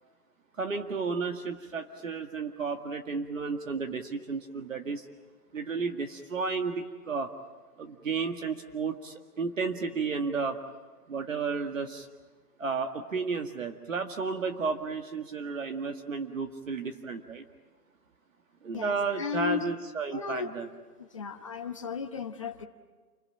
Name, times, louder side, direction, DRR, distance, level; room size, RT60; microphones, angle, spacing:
voice 1, 0.6-5.1 5.5-7.3 7.8-10.6 11.1-12.1 12.6-17.4 18.6-20.7, right 4 dB, 55° right, 5 dB, 2.0 m, -32 dB
voice 2, 18.7-19.7 20.1-20.5 21.0-22.7, left 6 dB, 20° left, 3 dB, 1.0 m, -35 dB
29.0 x 22.0 x 9.0 m, 1.4 s
hypercardioid pair, 180°, 46 cm